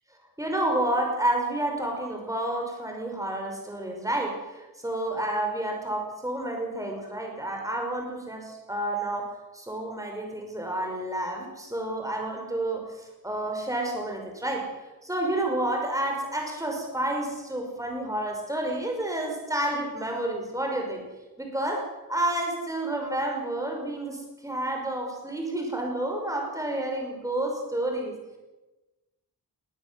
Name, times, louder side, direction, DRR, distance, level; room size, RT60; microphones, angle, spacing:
voice 1, 0.4-9.3 9.5-12.8 13.2-14.7 15.0-21.0 21.4-28.2, right 1 dB, 10° right, 1 dB, 5.8 m, -30 dB
21.0 x 19.5 x 7.9 m, 1.1 s
wide cardioid pair, 125°, 38 cm